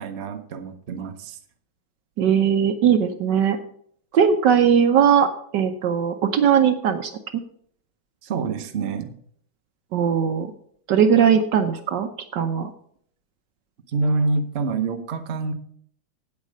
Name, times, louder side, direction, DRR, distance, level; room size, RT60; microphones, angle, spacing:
voice 1, 0.0-1.4 8.2-9.2 13.9-15.5, right 3 dB, 45° right, 6 dB, 0.9 m, -26 dB
voice 2, 2.2-3.6 4.1-7.1 9.9-10.5 10.9-12.7, right 8 dB, 65° right, 8 dB, 1.3 m, -19 dB
8.6 x 8.4 x 6.4 m, 0.64 s
omnidirectional pair, 2.2 m